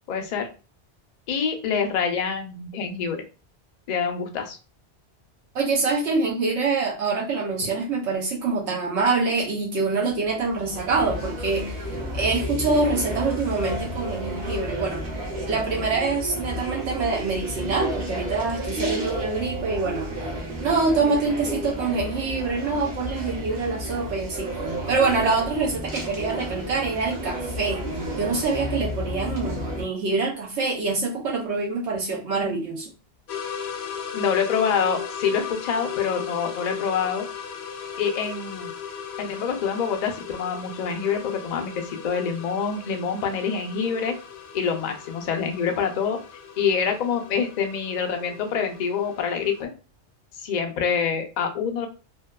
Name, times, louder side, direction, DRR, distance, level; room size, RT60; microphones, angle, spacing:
voice 1, 0.1-0.5 1.3-3.2 3.9-4.6 34.1-37.2 38.0-38.7 39.2-44.2 44.5-46.2 46.6-49.7 50.4-51.9, left 6 dB, 55° left, 5 dB, 0.5 m, -26 dB
voice 2, 5.5-11.8 12.1-15.0 15.5-20.1 20.6-24.6 24.9-27.8 28.2-32.9, right 4 dB, 80° right, -3 dB, 1.0 m, -25 dB
sound 1, 10.1-29.8, equal, 55° right, 1.0 m, -32 dB
sound 2, 33.3-49.6, left 7 dB, 75° left, 0.8 m, -37 dB
2.7 x 2.2 x 2.2 m, 0.33 s
omnidirectional pair, 1.1 m